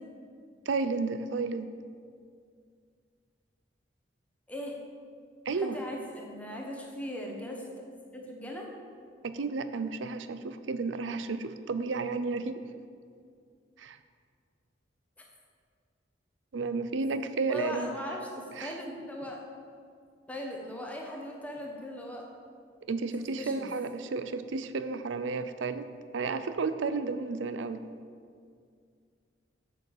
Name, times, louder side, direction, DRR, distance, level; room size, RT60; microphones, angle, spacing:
voice 1, 0.7-1.7 5.5-5.8 9.2-12.6 13.8-14.0 16.5-17.9 18.6-18.8 22.9-27.8, right 4 dB, 85° right, 11 dB, 0.5 m, -32 dB
voice 2, 5.5-7.6 8.1-8.7 17.5-19.4 20.3-22.3 23.2-23.6, equal, 10° left, 0 dB, 1.2 m, -39 dB
7.8 x 7.0 x 7.2 m, 2.2 s
head